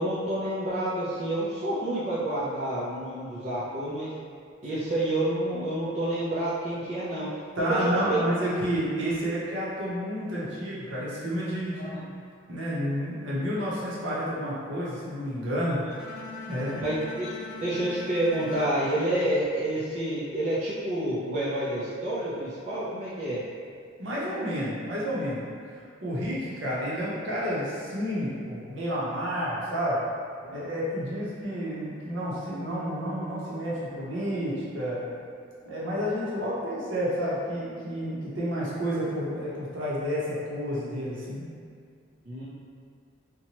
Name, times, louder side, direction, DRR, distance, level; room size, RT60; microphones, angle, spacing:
voice 1, 0.0-4.1 4.6-7.3 7.6-7.8 8.1-8.3 11.8-12.0 16.8-23.4 30.4-30.5 42.3-42.4, right 1 dB, 40° right, -9 dB, 0.4 m, -29 dB
voice 2, 7.6-12.0 12.5-15.8 16.5-16.8 24.0-25.4 25.7-30.0 30.5-35.0 35.6-41.5, equal, 70° right, -7 dB, 0.8 m, -30 dB
Bowed string instrument, 15.9-20.0, left 3 dB, 50° left, 0.4 m, -41 dB
2.8 x 2.2 x 2.9 m, 2.2 s
head